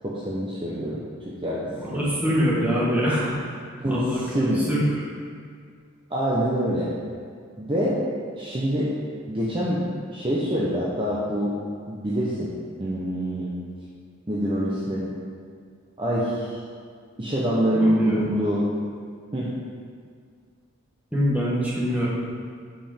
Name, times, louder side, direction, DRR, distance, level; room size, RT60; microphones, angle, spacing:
voice 1, 0.0-1.0 1.3-2.1 3.8-4.0 4.3-4.7 6.1-6.9 7.6-7.9 8.4-8.9 9.3-9.8 10.1-11.5 11.9-12.5 12.8-13.5 14.3-15.0 16.0-16.5 17.2-18.6 19.3-19.5, equal, 25° right, -7 dB, 0.9 m, -25 dB
voice 2, 1.8-5.1 17.7-18.3 21.1-22.1, equal, 5° right, -7 dB, 1.6 m, -25 dB
8.8 x 5.1 x 5.1 m, 2.1 s
head